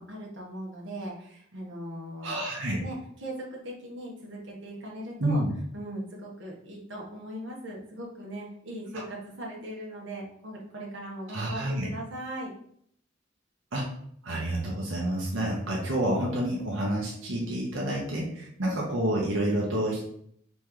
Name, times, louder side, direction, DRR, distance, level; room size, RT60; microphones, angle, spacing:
voice 1, 0.0-2.4 2.8-5.4 5.7-12.5, right 1 dB, 70° right, -3 dB, 1.2 m, -39 dB
voice 2, 2.2-2.8 5.2-5.5 11.3-11.9 13.7-13.9 14.2-20.0, right 1 dB, 90° right, -3 dB, 1.0 m, -29 dB
4.1 x 3.2 x 3.8 m, 0.67 s
head